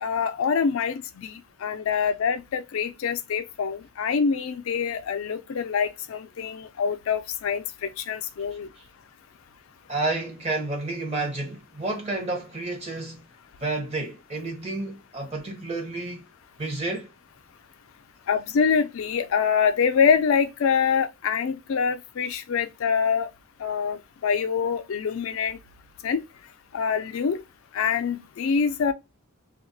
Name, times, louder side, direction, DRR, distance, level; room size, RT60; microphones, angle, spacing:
voice 1, 0.0-8.7 18.3-23.3 23.6-25.6 26.0-26.2 26.7-27.4 27.7-28.9, left 6 dB, 70° left, 0.4 m, -25 dB
voice 2, 9.9-13.3 13.6-16.2 16.6-17.1, right 2 dB, 30° right, 0.8 m, -30 dB
2.3 x 2.1 x 3.8 m
head